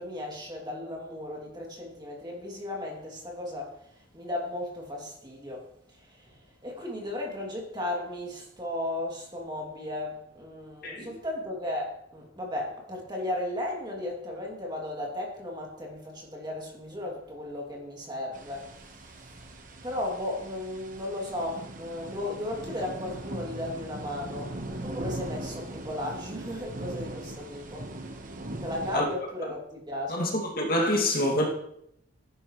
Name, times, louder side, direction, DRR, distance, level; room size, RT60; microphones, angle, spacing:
voice 1, 0.0-5.7 5.9-19.2 19.8-27.9 28.6-30.3, left 1 dB, 20° right, 2.8 m, -35 dB
voice 2, 10.8-11.1 28.9-29.0 30.1-31.5, left 1 dB, 45° left, 2.4 m, -26 dB
sound 1, 18.3-29.0, right 1 dB, 40° right, 1.2 m, -40 dB
14.0 x 11.0 x 3.2 m
head